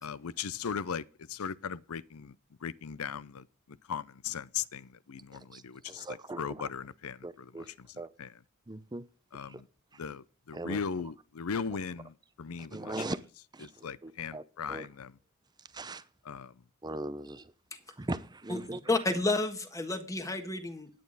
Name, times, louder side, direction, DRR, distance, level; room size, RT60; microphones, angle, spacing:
voice 1, 0.0-2.4 2.6-7.9 8.2-8.3 9.3-9.7 10.0-12.9 13.6-15.1 16.2-16.5, left 6 dB, 75° left, 0.6 m, -38 dB
voice 2, 5.5-6.7 7.2-7.7 8.0-8.1 8.7-9.0 9.5-9.6 10.5-10.8 12.7-13.2 13.5-14.9 15.7-16.0 16.8-17.5 18.0-18.8, right 2 dB, 20° right, 0.7 m, -39 dB
voice 3, 18.5-21.0, left 2 dB, 15° left, 1.5 m, -31 dB
10.5 x 9.3 x 4.0 m
head